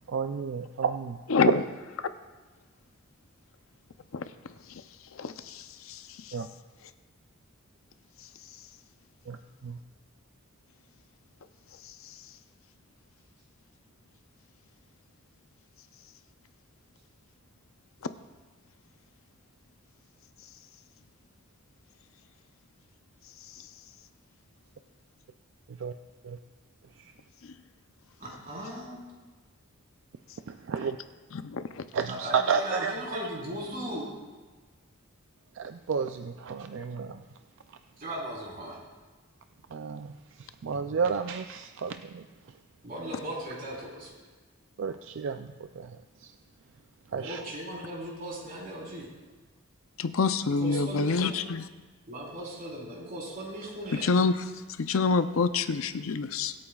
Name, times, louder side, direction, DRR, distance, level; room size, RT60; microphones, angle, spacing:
voice 1, 0.1-1.2 6.3-6.5 9.3-9.4 9.6-9.8 25.7-25.9 26.2-26.4 27.0-27.1 30.5-31.0 31.9-32.9 35.6-37.2 39.7-40.1 40.4-42.2 44.8-45.5 45.7-46.0 46.2-46.3 47.1-47.4, right 6 dB, 60° right, 7 dB, 0.4 m, -31 dB
voice 2, 1.3-1.6 2.0-2.1 4.1-4.3 5.1-6.3 27.4-27.5 31.3-31.8 50.0-51.7 54.0-54.4 54.8-56.5, left 4 dB, 70° left, 10 dB, 0.5 m, -27 dB
voice 3, 28.2-29.1 32.1-34.1 38.0-38.8 42.8-44.1 47.1-49.1 50.6-51.4 52.1-54.1, right 1 dB, 45° right, -4 dB, 4.0 m, -37 dB
23.5 x 8.7 x 2.4 m, 1.3 s
head